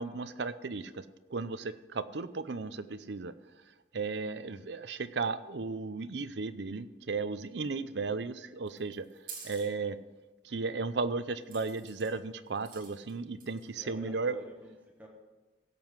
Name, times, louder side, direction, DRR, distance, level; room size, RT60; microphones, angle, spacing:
voice 1, 0.0-3.3 3.9-9.1 9.4-10.0 10.4-14.4, right 4 dB, 75° right, 13 dB, 0.6 m, -35 dB
sound 1, 8.7-9.7 11.5-12.1 12.5-13.1 13.4-13.8, right 5 dB, 50° right, 2.8 m, -47 dB
voice 2, 13.7-15.1, equal, 10° right, -1 dB, 1.4 m, -49 dB
16.5 x 7.6 x 4.7 m, 1.1 s
head